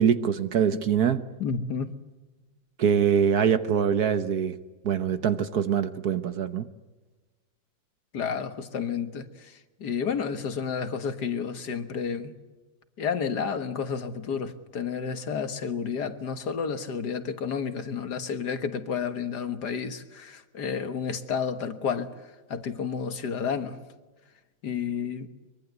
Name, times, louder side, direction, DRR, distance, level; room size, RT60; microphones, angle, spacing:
voice 1, 0.0-1.2 2.8-4.6 4.8-6.7, right 8 dB, 55° right, 1.4 m, -24 dB
voice 2, 1.4-1.9 8.1-9.3 9.8-12.3 13.0-22.1 22.5-23.8 24.6-25.3, left 6 dB, 60° left, 1.9 m, -31 dB
23.5 x 23.0 x 8.1 m
omnidirectional pair, 2.1 m